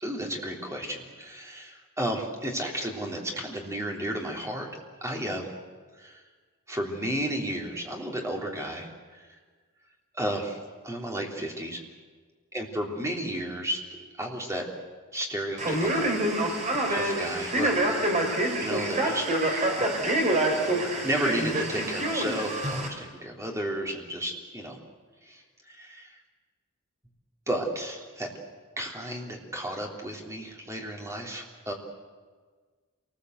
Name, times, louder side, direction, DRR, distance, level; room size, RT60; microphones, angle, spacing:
voice 1, 0.0-4.7 5.0-5.5 6.0-6.2 6.7-9.3 10.2-10.6 10.8-11.8 12.5-13.8 14.2-14.7 15.1-19.7 20.9-24.8 25.2-26.2 27.5-28.3 28.8-31.7, right 1 dB, 15° right, 0 dB, 3.3 m, -33 dB
Male speech man speaking, 15.6-22.9, right 1 dB, 35° right, 3.7 m, -26 dB
27.0 x 20.0 x 8.0 m, 1.5 s
head